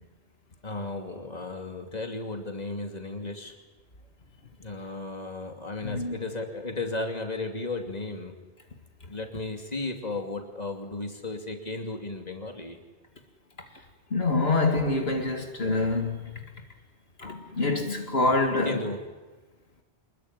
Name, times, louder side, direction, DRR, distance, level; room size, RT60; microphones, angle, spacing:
voice 1, 0.6-3.6 4.6-8.3 9.1-12.8 18.6-19.0, left 2 dB, 40° left, 2.9 m, -34 dB
voice 2, 5.8-6.1 14.1-16.4 17.2-18.7, left 3 dB, 65° left, 2.4 m, -26 dB
26.5 x 21.0 x 9.9 m
omnidirectional pair, 1.1 m